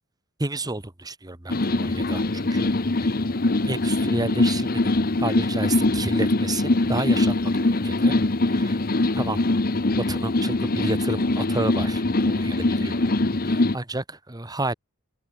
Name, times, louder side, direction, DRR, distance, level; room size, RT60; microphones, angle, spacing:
voice 1, 0.4-2.7 3.0-4.9 5.2-8.1 8.5-8.8 9.2-9.4 9.9-13.1 13.4-14.7, right 2 dB, 20° right, 1.6 m, -31 dB
sound 1, 1.5-13.8, left 2 dB, 45° left, 1.1 m, -23 dB
open air
head